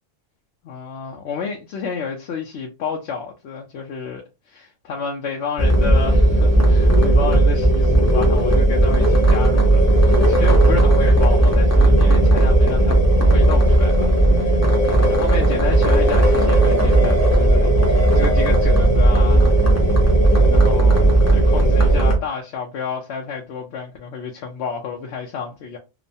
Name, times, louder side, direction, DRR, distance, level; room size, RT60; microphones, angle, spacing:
voice 1, 0.6-19.6 20.5-25.8, left 5 dB, 70° left, 0.8 m, -30 dB
sound 1, 5.6-22.2, right 1 dB, 15° left, 0.6 m, -15 dB
3.0 x 2.1 x 2.6 m
omnidirectional pair, 1.2 m